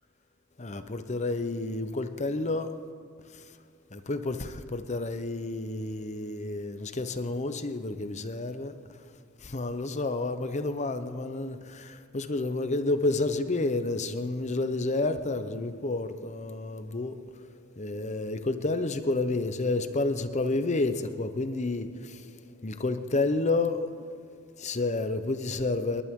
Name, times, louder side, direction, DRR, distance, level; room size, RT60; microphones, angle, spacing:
voice 1, 0.6-2.8 3.2-3.6 3.9-9.1 9.4-26.0, left 2 dB, 35° left, 0.8 m, -30 dB
29.5 x 11.0 x 3.7 m
head